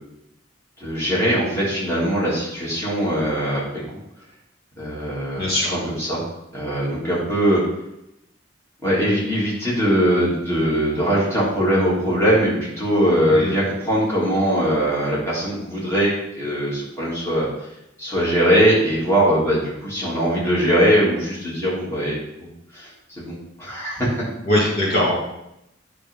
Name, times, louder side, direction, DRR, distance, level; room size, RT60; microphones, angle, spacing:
voice 1, 0.8-3.8 4.8-6.2 6.5-7.6 8.8-17.5 18.0-22.5 22.7-22.9 23.2-24.2, equal, 15° left, -7 dB, 3.3 m, -21 dB
voice 2, 5.4-5.8 13.3-13.6 24.4-25.2, left 1 dB, 55° left, -5 dB, 2.6 m, -21 dB
9.8 x 6.5 x 3.9 m, 0.84 s
head